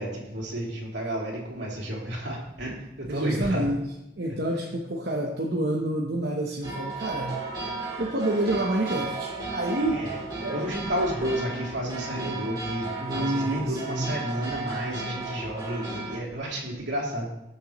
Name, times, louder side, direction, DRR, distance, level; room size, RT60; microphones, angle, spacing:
voice 1, 0.0-3.6 9.9-10.1 10.5-17.3, equal, 80° right, -3 dB, 3.1 m, -31 dB
voice 2, 3.1-3.9 4.2-7.5 8.0-10.1 10.4-10.6 13.0-14.2, right 1 dB, 60° right, -1 dB, 1.0 m, -28 dB
sound 1, 6.6-16.2, right 3 dB, 20° right, 3.2 m, -34 dB
20.0 x 6.8 x 3.1 m, 0.90 s
head